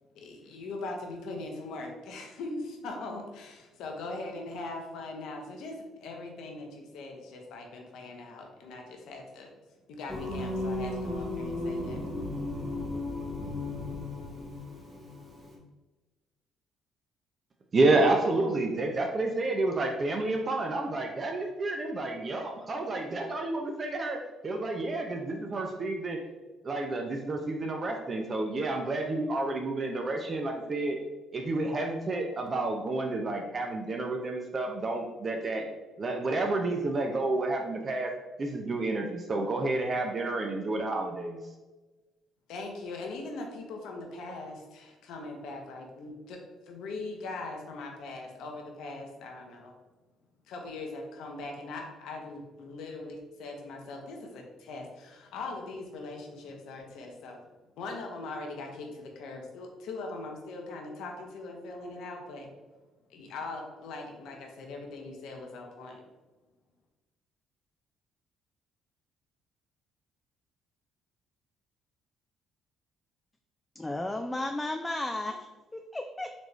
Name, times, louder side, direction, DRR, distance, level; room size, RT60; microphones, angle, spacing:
voice 1, 0.1-9.5 9.9-12.0 42.5-46.4 46.7-49.8 50.5-57.4 57.8-62.5 63.1-66.0, left 2 dB, 75° left, 2 dB, 0.8 m, -41 dB
Singing, 10.1-15.6, left 2 dB, 15° right, 1.3 m, -35 dB
voice 2, 17.7-26.2 26.6-31.0 31.3-35.6 36.0-38.1 38.4-41.4, right 2 dB, 40° right, 2 dB, 0.5 m, -30 dB
voice 3, 73.8-76.3, left 2 dB, 15° left, 5 dB, 0.3 m, -34 dB
4.1 x 3.2 x 3.1 m, 1.2 s
supercardioid pair, 65°, 0 cm